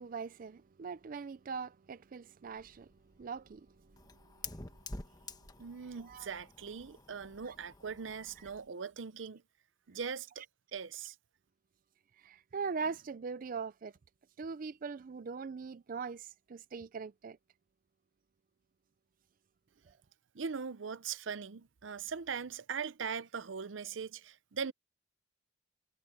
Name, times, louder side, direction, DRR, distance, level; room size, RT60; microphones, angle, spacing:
voice 1, 0.0-2.9 3.2-3.7 5.9-6.3 7.5-7.6 8.4-8.5 12.2-13.9 14.4-17.4, right 5 dB, 45° right, 0.4 m, -41 dB
Fire, 2.5-8.7, left 3 dB, 20° left, 1.4 m, -49 dB
voice 2, 5.6-9.4 9.9-10.4 10.7-11.1 20.3-24.7, right 6 dB, 85° right, 0.7 m, -40 dB
head